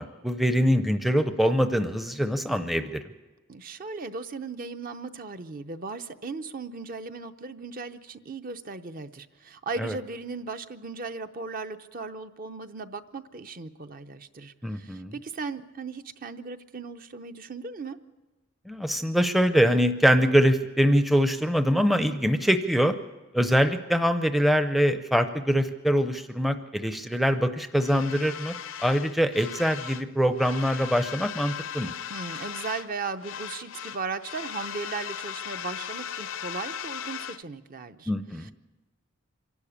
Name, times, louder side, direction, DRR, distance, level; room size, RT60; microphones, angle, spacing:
voice 1, 0.0-3.0 9.8-9.9 14.6-15.1 18.7-22.9 23.3-28.5 28.8-31.9 38.1-38.5, equal, ahead, 9 dB, 0.5 m, -23 dB
voice 2, 3.5-18.0 32.1-38.1 38.4-38.5, right 4 dB, 40° right, 9 dB, 0.7 m, -37 dB
sound 1, 27.7-30.1 30.3-32.9 33.2-37.4, left 8 dB, 60° left, 0.5 m, -38 dB
25.0 x 12.0 x 8.6 m, 1.2 s
head